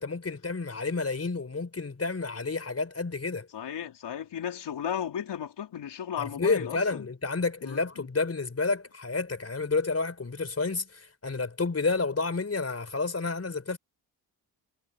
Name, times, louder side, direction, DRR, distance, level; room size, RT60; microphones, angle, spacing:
voice 1, 0.0-3.5 6.2-13.8, left 4 dB, 35° left, 4.6 m, -30 dB
voice 2, 3.5-7.1 7.6-7.8, left 9 dB, 70° left, 3.8 m, -35 dB
supercardioid pair, 55°, 43 cm